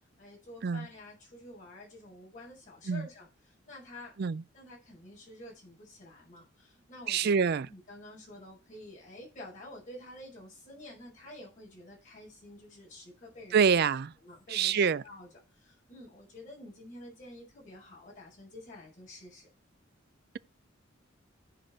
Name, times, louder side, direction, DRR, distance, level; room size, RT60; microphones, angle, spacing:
voice 1, 0.2-4.1 4.5-13.7 14.2-19.5, left 1 dB, 40° left, 5.4 m, -49 dB
voice 2, 7.1-7.7 13.5-14.1 14.5-15.0, right 6 dB, 55° right, 0.4 m, -26 dB
14.5 x 5.0 x 4.4 m
head